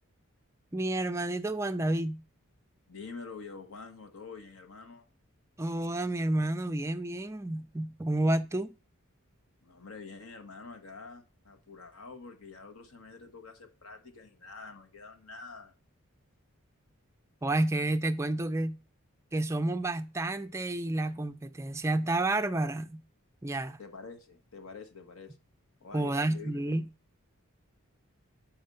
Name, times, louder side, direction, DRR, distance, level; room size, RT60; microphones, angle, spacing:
voice 1, 0.7-2.2 5.6-8.8 17.4-18.8 19.3-23.0 23.4-23.8 25.9-26.9, right 2 dB, 15° right, 0.4 m, -30 dB
voice 2, 2.9-5.1 9.6-15.7 23.8-25.4 25.8-26.6, left 4 dB, 70° left, 1.2 m, -47 dB
6.5 x 4.4 x 5.3 m
head